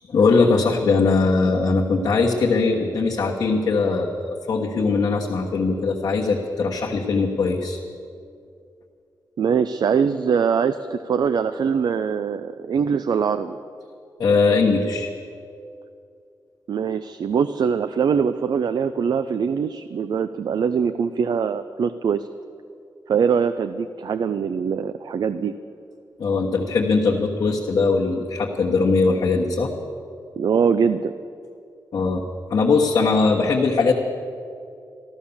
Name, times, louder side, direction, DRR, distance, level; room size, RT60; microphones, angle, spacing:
voice 1, 0.0-7.8 14.2-15.1 26.2-29.7 31.9-32.2 32.5-33.9, left 4 dB, 70° left, -4 dB, 1.4 m, -20 dB
voice 2, 9.4-13.6 16.7-22.3 23.1-25.6 30.4-31.1, right 6 dB, 70° right, 11 dB, 0.5 m, -22 dB
14.0 x 13.0 x 7.1 m, 2.5 s
cardioid pair, 90°, 7 cm